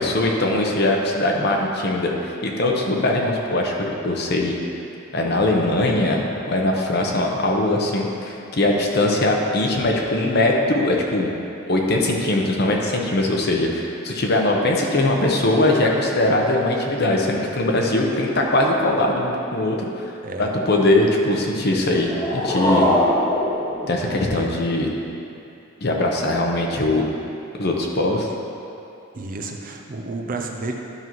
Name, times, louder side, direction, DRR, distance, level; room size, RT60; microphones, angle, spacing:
voice 1, 0.0-4.6 5.1-11.3 11.7-20.1 20.4-22.9 23.9-24.9 25.8-27.1 27.6-28.3, left 1 dB, 50° left, 0 dB, 0.9 m, -21 dB
sound 1, 21.8-24.8, left 1 dB, 20° left, 1.2 m, -23 dB
voice 2, 29.1-30.7, right 3 dB, 40° right, 2 dB, 0.6 m, -31 dB
11.5 x 5.5 x 3.1 m, 2.7 s
head